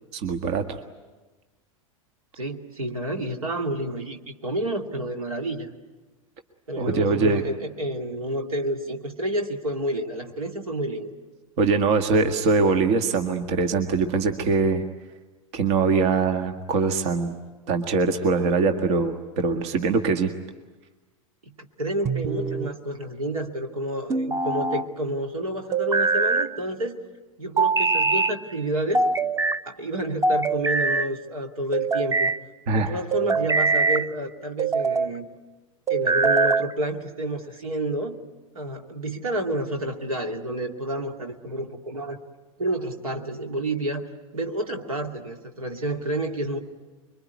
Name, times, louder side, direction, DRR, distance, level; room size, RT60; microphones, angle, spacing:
voice 1, 0.1-0.6 6.8-7.4 11.6-14.8 15.5-17.4 17.7-20.3 32.7-33.0, right 4 dB, 55° right, 6 dB, 1.8 m, -22 dB
voice 2, 2.3-5.7 6.7-11.1 21.4-27.0 27.4-29.1 29.7-32.3 32.7-35.3 35.9-38.2 38.5-42.2 42.6-44.0 44.3-46.6, right 1 dB, 80° right, 4 dB, 2.6 m, -29 dB
sound 1, 22.1-22.7 24.1-24.9 25.7-26.5 27.6-28.4 28.9-29.6 30.2-31.1 31.7-32.4 33.1-34.1 34.6-35.1 35.9-36.7, right 4 dB, 15° right, 0.8 m, -23 dB
26.0 x 23.5 x 9.5 m, 1.2 s
figure-of-eight pair, 90°, 18 cm